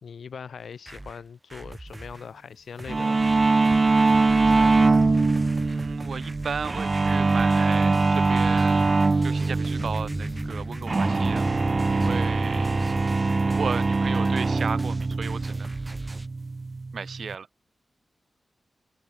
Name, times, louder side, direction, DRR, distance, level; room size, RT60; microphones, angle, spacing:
voice 1, 0.0-3.2 4.3-4.9, left 6 dB, 70° left, 2.0 m, -41 dB
sound 1, 0.6-2.3 2.8-16.3, right 2 dB, 15° right, 1.2 m, -42 dB
sound 2, 2.9-17.4, right 3 dB, 30° right, 0.4 m, -23 dB
sound 3, 3.1-13.6, left 1 dB, 10° left, 2.7 m, -38 dB
voice 2, 5.6-11.5 11.9-12.8 13.5-15.7 16.9-17.5, right 6 dB, 60° right, 4.5 m, -34 dB
wide cardioid pair, 130°, 0 cm